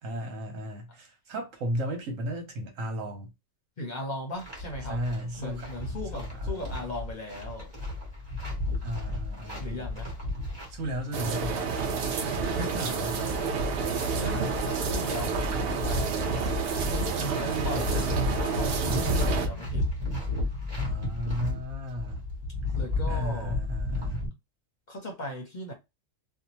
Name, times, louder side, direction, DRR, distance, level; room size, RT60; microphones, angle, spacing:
voice 1, 0.0-3.3 4.9-5.7 6.1-6.8 8.8-9.9 10.7-11.7 12.6-13.2 17.2-18.2 20.7-22.2 23.1-24.2, equal, 80° right, 1.2 m, -35 dB
voice 2, 3.8-5.0 5.4-7.7 9.6-10.1 12.4-12.8 13.1-13.4 14.2-16.6 17.4-19.9 22.7-23.6 24.9-25.7, left 1 dB, 45° left, 0.7 m, -38 dB
sound 1, 4.4-24.3, left 2 dB, 20° right, 1.2 m, -33 dB
sound 2, 11.1-19.5, right 6 dB, 65° right, 0.6 m, -30 dB
2.7 x 2.1 x 2.9 m
omnidirectional pair, 1.3 m